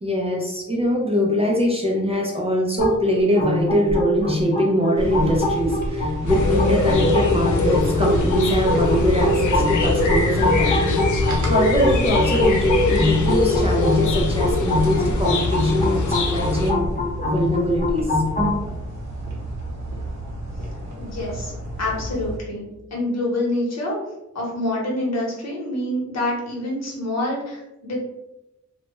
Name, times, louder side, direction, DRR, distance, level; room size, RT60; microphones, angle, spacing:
voice 1, 0.0-11.0 11.5-17.0 17.2-18.2, equal, 20° right, -2 dB, 0.4 m, -23 dB
sound 1, 2.8-18.6, left 1 dB, 30° left, 0.7 m, -24 dB
sound 2, 4.9-22.4, right 1 dB, 70° right, 0.8 m, -31 dB
sound 3, 6.3-16.7, left 3 dB, 90° left, 0.5 m, -23 dB
voice 2, 21.0-21.5 21.8-24.0 24.3-28.0, left 1 dB, 65° left, -3 dB, 0.9 m, -26 dB
2.1 x 2.1 x 2.9 m, 0.91 s
wide cardioid pair, 155°, 29 cm